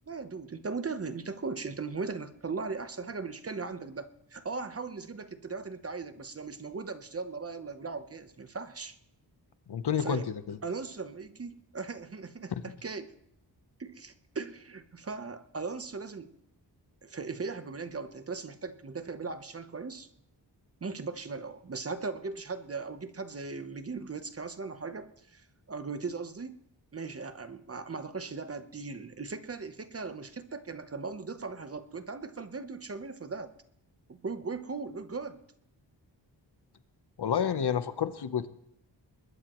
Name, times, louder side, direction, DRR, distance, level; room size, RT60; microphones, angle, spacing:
voice 1, 0.1-9.0 10.0-10.3 10.6-13.2 13.8-16.3 17.0-20.1 20.8-26.6 26.9-33.5 34.1-35.4, right 4 dB, 35° right, 10 dB, 0.9 m, -38 dB
voice 2, 9.7-10.6 37.2-38.5, left 8 dB, 65° left, 12 dB, 0.9 m, -29 dB
21.5 x 20.5 x 3.1 m, 0.74 s
wide cardioid pair, 160°, 43 cm